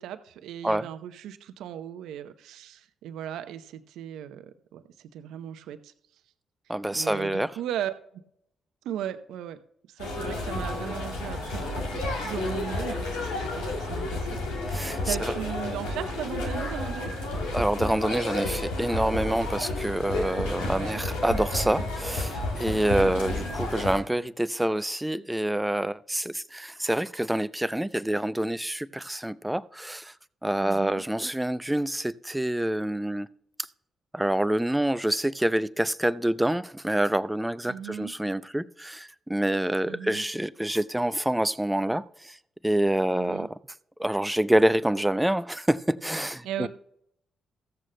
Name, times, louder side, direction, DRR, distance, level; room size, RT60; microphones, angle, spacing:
voice 1, 0.0-4.4 4.7-5.9 6.9-7.9 8.8-9.6 9.8-14.4 14.7-17.1 20.6-21.0 23.0-23.1 30.6-31.0 37.7-38.1 39.9-40.2 43.1-43.5 46.4-46.7, right 10 dB, 75° right, 0.7 m, -37 dB
voice 2, 6.7-7.5 14.7-15.3 17.5-30.1 30.4-33.3 34.1-42.4 42.6-43.5 44.0-46.7, right 1 dB, 10° right, 0.5 m, -27 dB
sound 1, 10.0-24.0, left 2 dB, 80° left, 2.0 m, -31 dB
15.0 x 13.5 x 2.2 m
hypercardioid pair, 40°, 0 cm